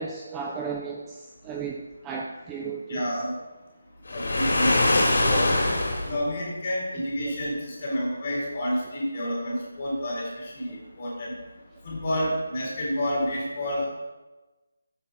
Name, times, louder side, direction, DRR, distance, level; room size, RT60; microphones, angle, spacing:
voice 1, 0.0-3.1 5.2-5.6 10.7-10.8, right 5 dB, 5° right, 0 dB, 0.4 m, -35 dB
voice 2, 2.9-3.3 4.1-4.7 5.3-11.3 11.8-13.9, equal, 25° left, -5 dB, 4.0 m, -29 dB
Waves surf, 4.1-6.2, left 2 dB, 60° left, 3.4 m, -22 dB
14.5 x 8.4 x 4.5 m, 1.1 s
figure-of-eight pair, 180°, 0 cm